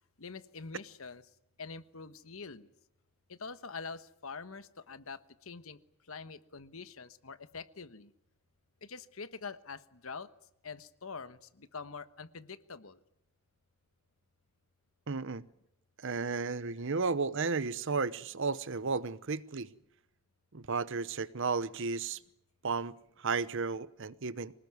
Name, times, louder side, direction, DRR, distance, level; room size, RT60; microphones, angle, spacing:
voice 1, 0.2-1.2 1.6-2.7 3.3-8.1 8.8-10.3 10.6-13.0, left 4 dB, 70° left, 1.3 m, -45 dB
voice 2, 15.1-15.4 16.0-19.7 20.5-22.2 22.6-24.6, right 4 dB, 60° right, 0.9 m, -33 dB
25.0 x 19.5 x 9.6 m
head